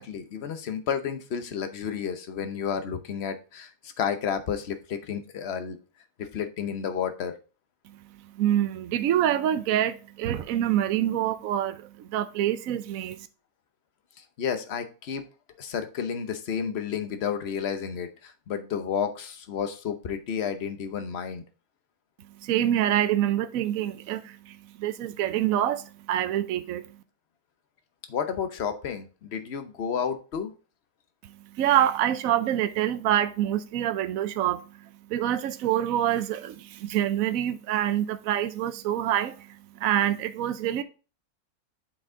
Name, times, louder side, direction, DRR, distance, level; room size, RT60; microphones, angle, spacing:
voice 1, 0.0-5.8 6.2-7.3 14.4-15.2 15.6-21.4 28.1-30.5, left 7 dB, 50° left, 1.0 m, -31 dB
voice 2, 8.3-13.3 22.4-26.8 31.5-34.6 35.1-39.5 39.8-40.8, right 11 dB, 70° right, 1.0 m, -26 dB
7.9 x 4.6 x 3.7 m
omnidirectional pair, 1.6 m